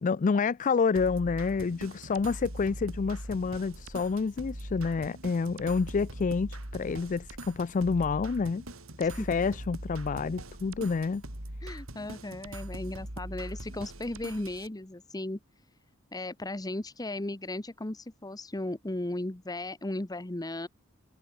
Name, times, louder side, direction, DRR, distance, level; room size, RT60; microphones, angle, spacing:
voice 1, 0.0-8.6 9.0-11.2, left 5 dB, 40° left, 0.4 m, -28 dB
sound 1, 0.9-14.7, right 1 dB, 85° right, 4.2 m, -42 dB
voice 2, 11.6-15.4 16.1-20.7, left 1 dB, 20° left, 1.0 m, -36 dB
head